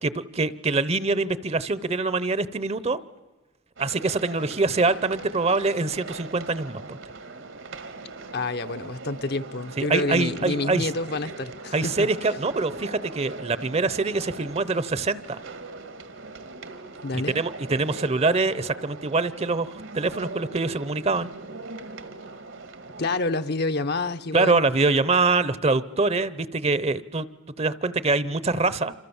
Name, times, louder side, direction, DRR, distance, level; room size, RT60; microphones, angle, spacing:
voice 1, 0.0-3.0 3.8-7.0 9.8-10.9 11.7-15.4 17.1-21.3 24.3-27.3 27.6-28.9, right 3 dB, 30° right, 0.8 m, -24 dB
sound 1, 3.8-23.2, right 3 dB, 75° right, 1.9 m, -40 dB
voice 2, 8.3-12.1 17.0-17.4 23.0-24.6, left 2 dB, 55° left, 0.9 m, -28 dB
27.5 x 27.0 x 7.2 m
head